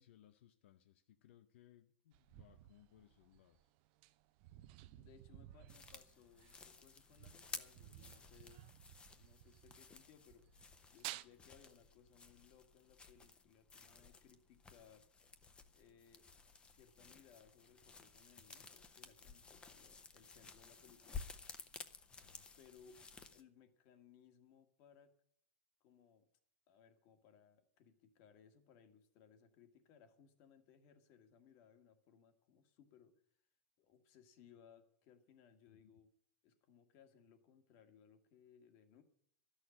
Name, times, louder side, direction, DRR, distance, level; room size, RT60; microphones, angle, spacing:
voice 1, 0.0-3.7 22.2-22.5 35.7-36.0, left 12 dB, 85° left, 9 dB, 0.7 m, -66 dB
sound 1, 2.1-9.9 10.2-11.2, right 15 dB, 50° right, 0.6 m, -55 dB
voice 2, 5.0-8.6 9.2-15.1 15.7-16.3 16.7-21.2 22.6-23.0 23.3-25.1 25.8-26.3 26.7-33.2 33.8-36.1 36.4-39.0, left 7 dB, 50° left, 8 dB, 1.7 m, -65 dB
sound 2, 5.7-23.4, left 5 dB, 15° left, 0.8 m, -55 dB
12.5 x 6.5 x 9.8 m, 0.67 s
supercardioid pair, 150°, 6 cm